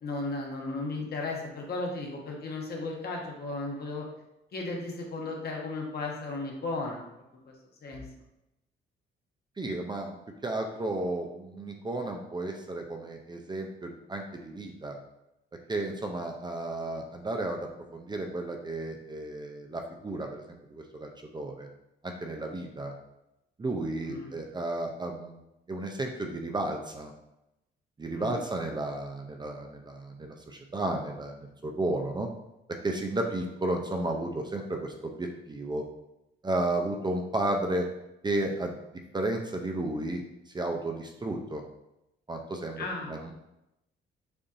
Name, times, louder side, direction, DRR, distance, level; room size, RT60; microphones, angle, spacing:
voice 1, 0.0-4.0 4.5-7.0 7.4-7.5 7.8-8.0 24.0-24.3 28.1-28.4 42.8-43.2, left 3 dB, 55° left, -1 dB, 1.2 m, -35 dB
voice 2, 9.6-10.1 10.4-15.0 15.7-21.7 22.0-22.9 23.6-25.4 25.7-27.1 28.0-32.3 32.8-35.8 36.4-37.9 38.2-38.8 39.1-40.2 40.5-41.6 42.3-43.3, right 2 dB, 20° right, 3 dB, 0.5 m, -33 dB
6.7 x 2.6 x 2.6 m, 0.89 s
cardioid pair, 90°, 20 cm